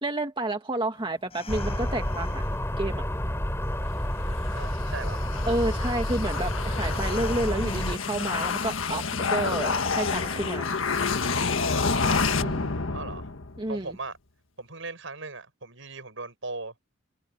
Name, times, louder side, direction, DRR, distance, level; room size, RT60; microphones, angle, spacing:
voice 1, 0.0-2.4 2.8-3.0 5.5-10.7 12.4-12.7 13.6-14.0, right 2 dB, 25° right, 1.9 m, -30 dB
sound 1, 0.9-12.1, left 3 dB, 30° left, 7.0 m, -48 dB
sound 2, 1.5-8.0, equal, 15° left, 3.3 m, -29 dB
sound 3, 4.3-13.7, left 4 dB, 80° left, 1.6 m, -29 dB
voice 2, 4.5-5.2 12.8-13.3 13.7-14.2 14.6-16.7, right 3 dB, 70° right, 6.6 m, -38 dB
head